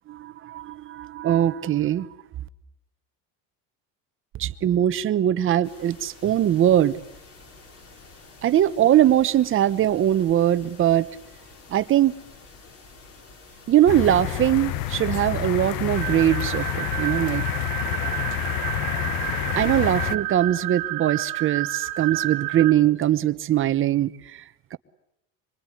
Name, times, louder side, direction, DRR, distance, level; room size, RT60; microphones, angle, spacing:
voice 1, 0.1-2.1 4.3-7.0 8.4-11.1 11.7-12.1 13.7-17.4 19.5-24.4 24.7-24.8, right 11 dB, 35° right, 1.0 m, -21 dB
sound 1, 5.6-16.7, left 3 dB, 40° left, 5.0 m, -49 dB
sound 2, 13.9-20.2, left 13 dB, 65° left, 1.4 m, -28 dB
sound 3, 15.9-22.7, right 18 dB, 65° right, 1.9 m, -30 dB
25.0 x 24.0 x 9.9 m
cardioid pair, 155°, 38 cm